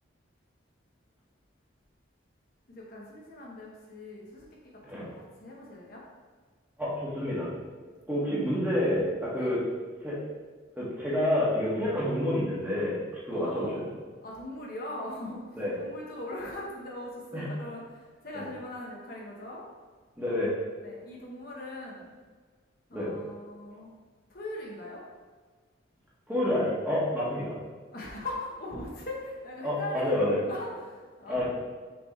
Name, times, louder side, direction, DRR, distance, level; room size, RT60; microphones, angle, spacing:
voice 1, 2.7-6.0 8.3-8.5 9.3-9.5 13.3-13.9 14.2-19.6 20.8-22.2 22.9-23.9 24.3-25.0 27.9-31.4, left 1 dB, 45° left, -3 dB, 0.9 m, -40 dB
voice 2, 6.8-7.5 8.1-9.6 10.0-10.2 10.8-13.8 15.5-15.7 17.3-17.5 18.3-18.4 20.2-20.5 22.9-23.1 26.3-27.5 29.6-30.4 31.2-31.4, left 1 dB, 10° right, -8 dB, 1.5 m, -28 dB
6.2 x 5.1 x 3.1 m, 1.5 s
head